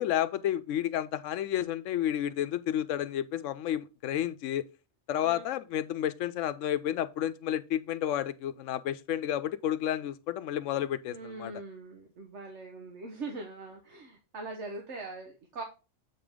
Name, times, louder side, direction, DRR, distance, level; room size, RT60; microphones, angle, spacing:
voice 1, 0.0-4.7 5.1-11.5, left 11 dB, 85° left, 1.0 m, -31 dB
voice 2, 11.1-15.6, right 3 dB, 70° right, 1.4 m, -42 dB
7.9 x 5.1 x 3.6 m
omnidirectional pair, 1.3 m